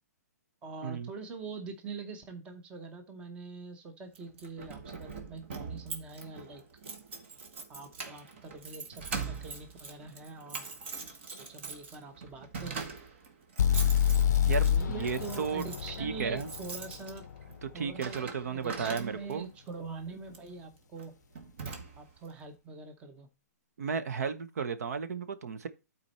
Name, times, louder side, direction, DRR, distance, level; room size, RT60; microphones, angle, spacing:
voice 1, 0.6-6.6 7.7-10.7 11.3-12.9 14.6-17.3 17.7-21.2 22.0-23.3, right 4 dB, 10° right, 0.8 m, -44 dB
Keys jangling, 4.1-19.5 20.3-20.5 21.0-21.1 21.3-22.3, right 4 dB, 45° right, 1.4 m, -43 dB
sound 1, 13.6-17.5, left 9 dB, 90° left, 0.5 m, -28 dB
voice 2, 14.5-15.6 16.0-16.5 17.6-19.5 23.8-25.7, right 6 dB, 65° right, 0.9 m, -34 dB
12.0 x 4.3 x 4.3 m
hypercardioid pair, 165°, 9 cm